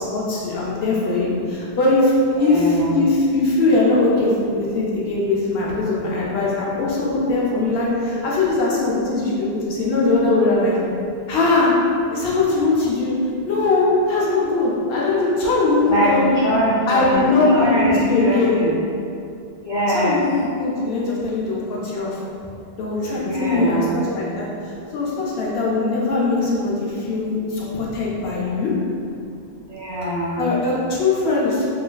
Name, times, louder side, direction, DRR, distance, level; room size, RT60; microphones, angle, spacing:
voice 1, 0.0-2.1 2.4-10.8 11.3-11.7 12.1-13.2 13.5-16.4 16.9-18.6 19.9-22.2 22.8-24.5 24.9-28.7 30.4-31.6, left 3 dB, 75° left, -5 dB, 0.8 m, -20 dB
voice 2, 2.4-3.0 15.9-18.7 19.7-20.2 23.1-24.0 29.7-30.5, right 1 dB, 40° left, -11 dB, 0.4 m, -23 dB
3.2 x 2.6 x 2.2 m, 2.5 s
omnidirectional pair, 1.1 m